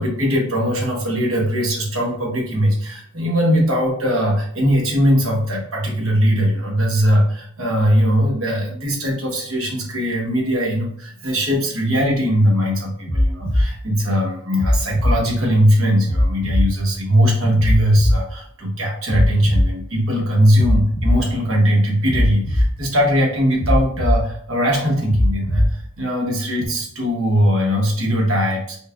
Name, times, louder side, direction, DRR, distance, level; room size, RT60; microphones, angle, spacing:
voice 1, 0.0-28.8, equal, 70° right, -2 dB, 1.2 m, -20 dB
sound 1, 13.1-13.7 14.6-15.2 16.1-16.7 17.6-18.2 19.1-19.7 20.6-21.2 22.1-22.7 23.6-24.2 25.1-25.7 26.6-26.7, left 1 dB, 35° left, 1.5 m, -18 dB
5.4 x 2.4 x 2.4 m, 0.62 s
head